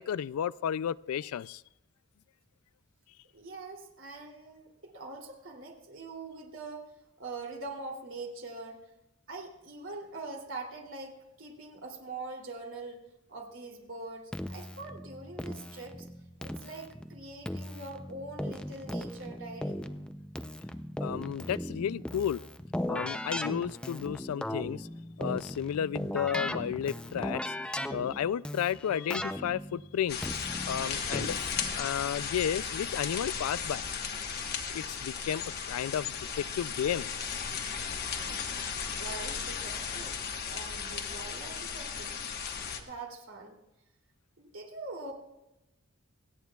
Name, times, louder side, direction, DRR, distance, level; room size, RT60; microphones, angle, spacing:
voice 1, 0.0-1.6 21.0-22.4 22.9-24.9 25.2-30.3 30.7-31.4 31.8-33.8 34.7-37.1, left 9 dB, 90° left, 19 dB, 0.3 m, -33 dB
voice 2, 3.3-6.9 7.2-8.8 9.3-13.0 13.3-16.1 16.4-19.8 38.1-38.4 38.9-42.1 42.8-43.6 44.4-45.1, right 3 dB, 60° right, 0 dB, 2.9 m, -43 dB
Keyboard (musical), 14.3-31.7, left 1 dB, 5° left, 0.5 m, -38 dB
sound 1, 30.1-42.8, left 6 dB, 45° left, 1.2 m, -36 dB
27.5 x 9.4 x 2.3 m, 0.94 s
head